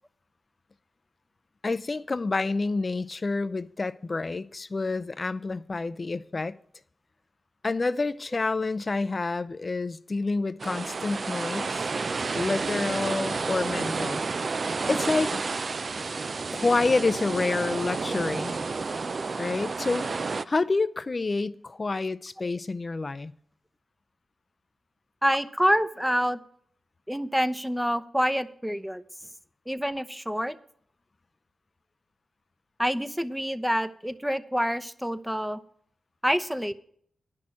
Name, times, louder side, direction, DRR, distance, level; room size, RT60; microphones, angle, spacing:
voice 1, 1.6-6.6 7.6-11.9 12.3-14.2 14.9-15.4 16.5-18.6 19.4-23.3, left 3 dB, 45° left, 0.5 m, -28 dB
sound 1, 10.6-20.4, right 4 dB, 55° right, 0.4 m, -30 dB
voice 2, 25.2-26.4 27.1-29.0 29.7-30.6 32.8-35.6 36.2-36.7, equal, 5° right, 0.8 m, -27 dB
10.5 x 6.2 x 8.6 m
supercardioid pair, 40°, 0 cm